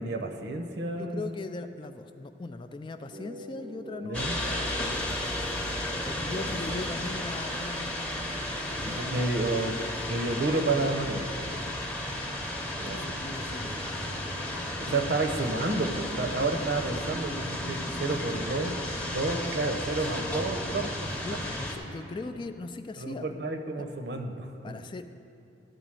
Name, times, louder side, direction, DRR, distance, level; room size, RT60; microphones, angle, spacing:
voice 1, 0.0-1.3 4.0-4.4 6.2-6.8 8.8-9.7 10.1-11.3 12.8-13.1 14.9-18.7 19.0-20.9 23.0-24.5, right 2 dB, 65° right, 5 dB, 0.8 m, -30 dB
voice 2, 1.0-4.9 6.0-9.3 9.7-10.2 11.5-11.8 12.7-13.9 14.8-15.1 21.2-23.3 24.6-25.1, left 3 dB, 25° left, 9 dB, 0.3 m, -40 dB
sound 1, 3.1-6.7, right 1 dB, 35° right, 0.4 m, -46 dB
sound 2, 4.1-21.8, left 1 dB, 5° left, 0.8 m, -33 dB
sound 3, 8.2-22.5, left 2 dB, 65° left, 0.7 m, -49 dB
12.0 x 4.0 x 7.6 m, 2.7 s
head